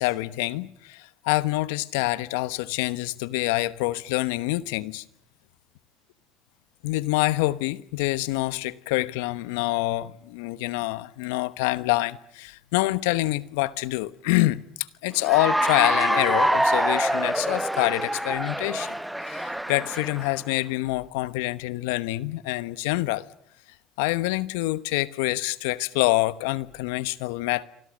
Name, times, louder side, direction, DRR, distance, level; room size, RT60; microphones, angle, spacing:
voice 1, 0.0-5.0 6.8-18.9 19.3-23.2 24.0-27.6, left 19 dB, 75° left, 1.0 m, -26 dB
Cheering / Applause, 15.2-20.4, right 1 dB, 5° right, 1.0 m, -25 dB
28.0 x 25.5 x 6.4 m
hypercardioid pair, 75°, 0 cm